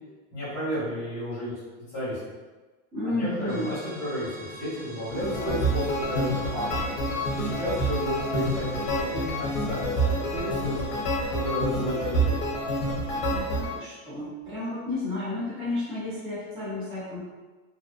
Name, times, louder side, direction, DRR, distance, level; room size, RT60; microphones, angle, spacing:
voice 1, 0.3-1.5 1.9-2.2 3.0-6.6 7.3-10.9 11.3-12.4, equal, 15° left, -12 dB, 1.0 m, -32 dB
voice 2, 2.9-3.7 13.1-17.2, left 2 dB, 15° right, -10 dB, 0.4 m, -32 dB
sound 1, 3.5-11.6, right 1 dB, 60° right, 1.4 m, -44 dB
sound 2, 5.1-13.7, right 1 dB, 40° left, 0.5 m, -28 dB
2.6 x 2.2 x 2.3 m, 1.3 s
supercardioid pair, 175°, 38 cm